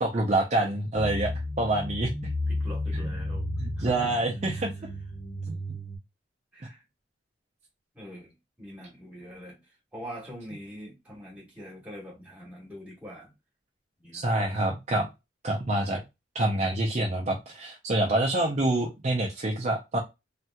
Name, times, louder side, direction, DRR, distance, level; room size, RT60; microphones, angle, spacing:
voice 1, 0.0-2.1 2.9-3.1 3.6-4.7 5.5-5.6 14.1-15.1 15.4-16.0 16.3-20.0, right 2 dB, 40° right, 0.5 m, -27 dB
sound 1, 0.9-6.0, left 1 dB, 60° left, 1.5 m, -33 dB
voice 2, 2.5-3.5 3.8-4.2 4.5-4.7 6.5-6.8 7.9-9.6 9.9-13.3 14.0-14.3, equal, 10° right, 1.4 m, -43 dB
3.2 x 2.8 x 2.3 m
head